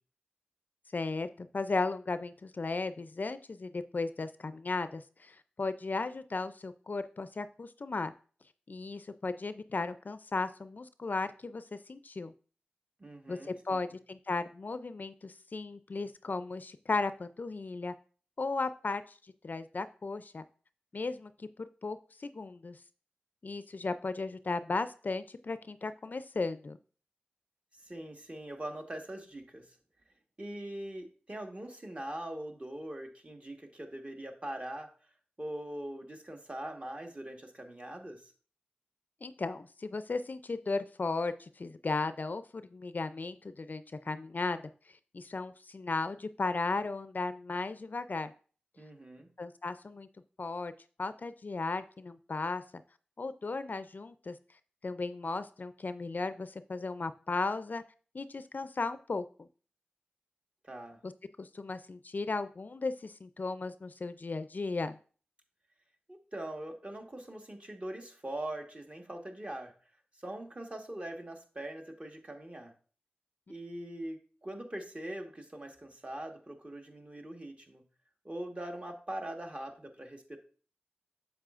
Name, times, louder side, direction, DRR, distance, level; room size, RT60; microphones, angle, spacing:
voice 1, 0.9-8.1 8.7-12.3 13.3-17.9 18.4-19.2 19.4-20.4 20.9-22.8 23.4-26.8 39.2-44.6 45.1-48.3 49.4-50.1 50.4-50.7 51.0-52.6 53.2-54.4 54.8-57.8 58.1-59.5 61.0-61.1 61.4-65.0, left 3 dB, 55° left, 12 dB, 0.4 m, -36 dB
voice 2, 13.0-13.9 27.8-29.7 30.4-34.9 35.4-38.2 48.8-49.3 60.6-61.0 66.1-69.7 70.2-72.7 73.5-77.8 78.2-80.4, right 1 dB, 35° right, 2 dB, 1.4 m, -42 dB
7.4 x 7.2 x 2.5 m, 0.41 s
cardioid pair, 40°, 4 cm